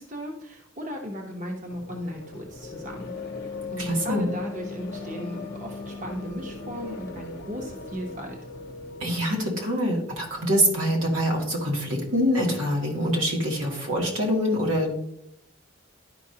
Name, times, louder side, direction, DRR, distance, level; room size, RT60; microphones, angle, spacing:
voice 1, 0.0-8.4, equal, 40° right, 0 dB, 1.0 m, -36 dB
sound 1, 1.7-9.1, left 3 dB, 55° left, 0.7 m, -38 dB
voice 2, 3.8-4.3 9.0-15.0, equal, 90° right, -2 dB, 2.3 m, -25 dB
12.0 x 5.2 x 2.8 m, 0.78 s
head